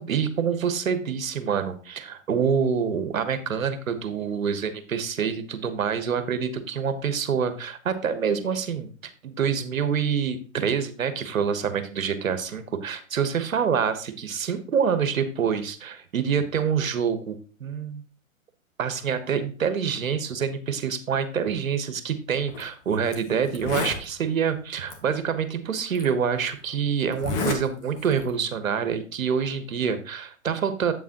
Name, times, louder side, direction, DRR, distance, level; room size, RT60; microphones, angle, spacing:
voice 1, 0.0-18.0 18.8-30.9, right 7 dB, 75° right, 11 dB, 1.2 m, -26 dB
Zipper (clothing), 22.5-22.6 23.1-23.2 23.5-24.0 24.9-25.0 25.9-26.0 27.1-27.6 28.0-28.3, left 4 dB, 35° left, 1.6 m, -29 dB
8.1 x 7.3 x 2.9 m, 0.39 s
hypercardioid pair, 120°, 41 cm